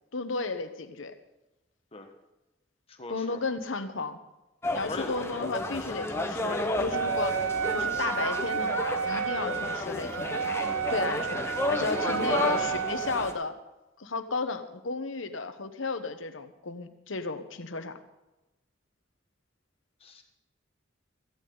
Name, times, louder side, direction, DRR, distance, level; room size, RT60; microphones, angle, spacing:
voice 1, 0.1-1.1 3.1-4.2 4.7-10.6 10.9-13.6 14.0-18.0, left 3 dB, 90° left, 9 dB, 1.1 m, -34 dB
voice 2, 2.9-3.4 4.9-5.2 11.9-12.7 17.7-17.9 20.0-20.2, left 2 dB, 30° left, 4 dB, 1.6 m, -41 dB
sound 1, 4.6-13.3, left 2 dB, 15° left, 1.1 m, -32 dB
Wind instrument woodwind instrument, 6.9-13.4, right 7 dB, 90° right, 0.5 m, -31 dB
17.0 x 14.5 x 4.0 m, 1.0 s
head